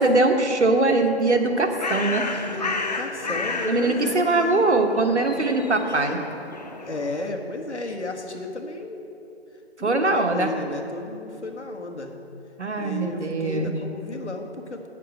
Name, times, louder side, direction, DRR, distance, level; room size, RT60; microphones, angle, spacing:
voice 1, 0.0-2.2 3.6-6.2 9.8-10.5 12.6-13.7, right 2 dB, 85° right, 4 dB, 1.3 m, -21 dB
Bird, 1.3-7.3, left 3 dB, 40° left, 0.6 m, -32 dB
voice 2, 2.3-4.6 5.3-6.2 6.9-9.1 9.8-12.1 12.8-14.9, left 2 dB, 85° left, 3 dB, 1.5 m, -33 dB
8.7 x 6.7 x 6.6 m, 2.7 s
figure-of-eight pair, 155°, 34 cm